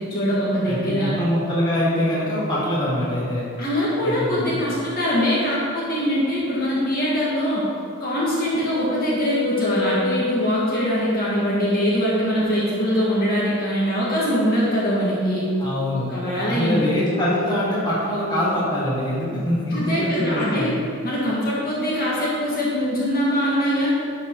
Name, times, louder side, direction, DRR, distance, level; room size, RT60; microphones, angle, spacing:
voice 1, 0.0-1.1 3.6-7.6 8.0-15.4 15.9-16.8 19.7-20.7 21.0-23.9, equal, 45° left, -7 dB, 1.7 m, -22 dB
voice 2, 0.7-3.4 4.0-4.6 15.6-16.1 16.4-20.8, left 1 dB, 20° left, -8 dB, 1.9 m, -23 dB
sound 1, 7.9-11.0, left 3 dB, 10° right, 1.0 m, -30 dB
11.0 x 5.0 x 3.9 m, 2.4 s
head